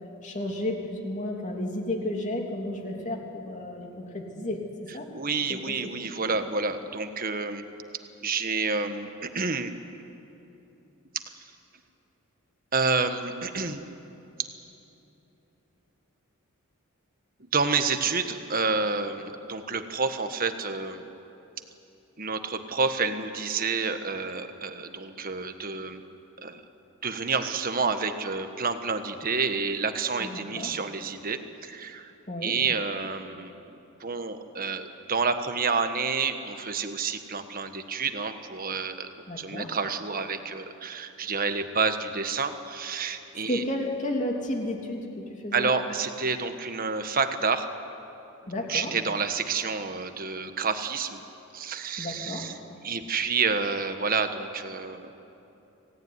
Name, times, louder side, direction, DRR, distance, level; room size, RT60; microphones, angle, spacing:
voice 1, 0.2-4.6 4.9-5.1 5.5-5.8 30.2-30.7 32.3-32.5 39.3-39.7 43.5-45.7 48.5-48.9 52.0-52.4, left 1 dB, 35° left, 1 dB, 3.1 m, -32 dB
voice 2, 5.1-7.6 8.2-9.8 12.7-13.9 17.5-21.0 22.2-26.0 26.4-26.6 27.0-32.1 32.4-33.7 34.0-43.6 45.5-47.7 48.7-51.2 51.5-52.6 52.8-55.1, right 4 dB, 40° right, 8 dB, 1.4 m, -29 dB
26.5 x 18.0 x 9.7 m, 2.9 s
head